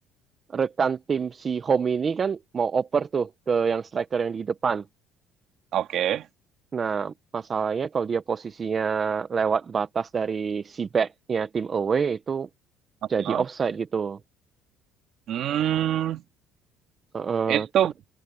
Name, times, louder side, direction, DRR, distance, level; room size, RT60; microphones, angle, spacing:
voice 1, 0.5-4.8 6.7-12.5 13.1-14.2 17.1-17.7, right 6 dB, 25° right, 0.6 m, -26 dB
voice 2, 5.7-6.3 13.2-13.4 15.3-16.2 17.5-17.9, right 11 dB, 50° right, 2.3 m, -25 dB
open air
cardioid pair, 155°, 0 cm